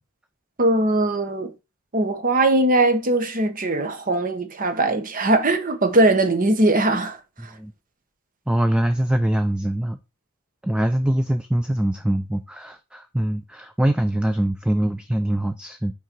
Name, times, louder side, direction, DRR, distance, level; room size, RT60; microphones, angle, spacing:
voice 1, 0.6-1.5 1.9-7.2, right 2 dB, 40° right, 1.1 m, -20 dB
voice 2, 7.4-7.7 8.5-10.0 10.6-15.9, right 1 dB, 5° right, 0.4 m, -23 dB
6.4 x 4.8 x 4.5 m
head